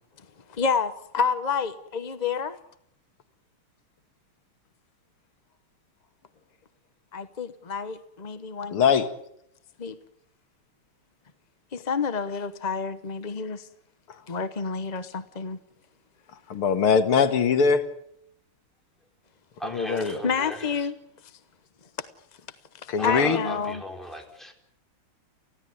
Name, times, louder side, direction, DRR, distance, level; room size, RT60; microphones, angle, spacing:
voice 1, 0.5-2.6 7.1-8.8 9.8-10.0 11.7-13.7 14.3-15.6 20.2-20.9 22.8-23.8, left 5 dB, 40° left, 11 dB, 0.6 m, -29 dB
voice 2, 8.7-9.1 16.5-17.8 19.7-20.2 22.9-23.4, left 6 dB, 90° left, 9 dB, 2.6 m, -21 dB
voice 3, 19.6-20.9 23.0-24.5, equal, ahead, 2 dB, 4.5 m, -36 dB
29.5 x 16.0 x 9.5 m, 0.73 s
omnidirectional pair, 2.3 m